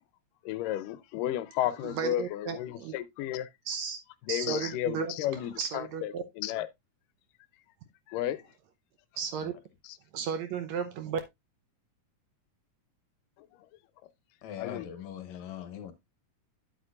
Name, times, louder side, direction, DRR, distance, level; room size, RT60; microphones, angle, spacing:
voice 1, 0.5-3.5 4.3-6.7 8.1-8.4 9.8-10.0 13.4-13.5 14.6-14.9, left 13 dB, 85° left, 2.3 m, -33 dB
voice 2, 1.8-2.9 3.7-4.0 4.3-5.2 5.6-6.2 9.2-9.5 10.1-11.2, right 6 dB, 75° right, 1.8 m, -34 dB
voice 3, 14.4-15.9, left 10 dB, 65° left, 2.2 m, -40 dB
9.4 x 8.1 x 2.4 m
omnidirectional pair, 3.7 m